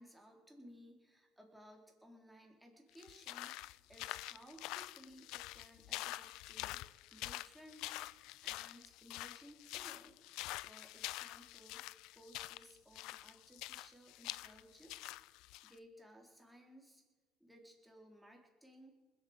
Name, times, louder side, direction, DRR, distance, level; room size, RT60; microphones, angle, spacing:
voice 1, 0.0-8.1 8.4-10.1 10.6-11.8 12.1-17.0 17.4-18.9, equal, 5° right, 1 dB, 4.1 m, -60 dB
sound 1, 2.9-15.7, left 18 dB, 75° left, 0.4 m, -46 dB
20.5 x 8.5 x 8.2 m, 1.3 s
supercardioid pair, 80°, 0 cm